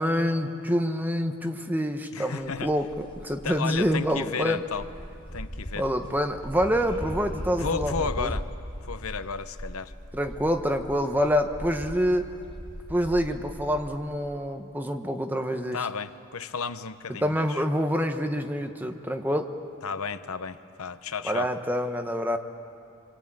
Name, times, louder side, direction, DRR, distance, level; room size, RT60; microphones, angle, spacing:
voice 1, 0.0-4.6 5.7-8.4 10.1-12.3 12.9-15.8 17.2-19.5 21.2-22.4, equal, 10° right, 5 dB, 1.1 m, -27 dB
voice 2, 2.1-2.7 3.4-4.9 5.3-5.9 7.6-8.5 8.9-9.9 15.7-17.6 19.8-21.5, left 5 dB, 80° left, 11 dB, 0.9 m, -33 dB
sound 1, 2.4-13.9, equal, 25° left, 3.4 m, -39 dB
28.0 x 23.0 x 8.9 m, 2.6 s
head